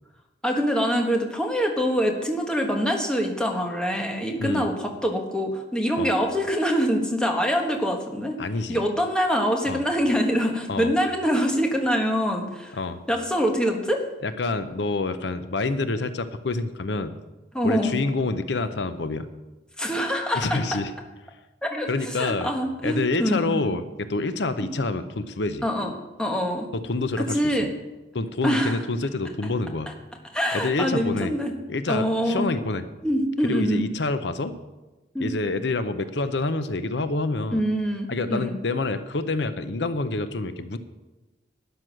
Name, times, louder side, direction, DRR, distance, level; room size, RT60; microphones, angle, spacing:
voice 1, 0.4-8.4 8.7-12.8 13.1-14.0 17.5-18.0 19.8-20.6 21.6-23.6 25.6-25.9 26.2-26.7 27.2-27.7 28.4-28.8 30.3-31.5 31.9-32.5 33.0-33.8 35.1-35.3 37.5-38.6, equal, 5° left, 2 dB, 1.4 m, -24 dB
voice 2, 8.4-8.8 9.7-9.8 10.7-10.9 12.7-13.0 14.2-17.2 17.6-19.3 20.3-20.9 21.9-22.5 22.8-25.6 26.7-27.7 28.1-29.9 30.5-31.3 31.7-32.8 33.4-34.5 35.2-37.6 38.1-40.8, left 3 dB, 75° left, 11 dB, 0.7 m, -27 dB
12.0 x 9.5 x 6.4 m, 1.1 s
head